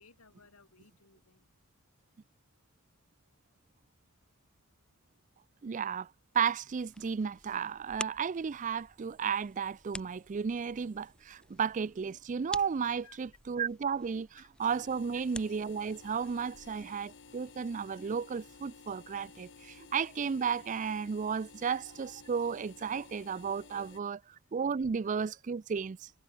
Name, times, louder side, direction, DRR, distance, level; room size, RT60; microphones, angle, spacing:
voice 1, 0.0-1.5 13.0-13.2 14.4-14.5 15.1-15.2 16.6-16.7 23.9-24.0, left 5 dB, 75° left, 3.6 m, -60 dB
voice 2, 5.6-6.1 6.3-24.2 24.5-26.1, right 6 dB, 35° right, 0.4 m, -33 dB
sound 1, 6.7-16.8, left 1 dB, 5° left, 1.1 m, -49 dB
sound 2, 14.6-24.0, left 4 dB, 60° left, 1.2 m, -54 dB
head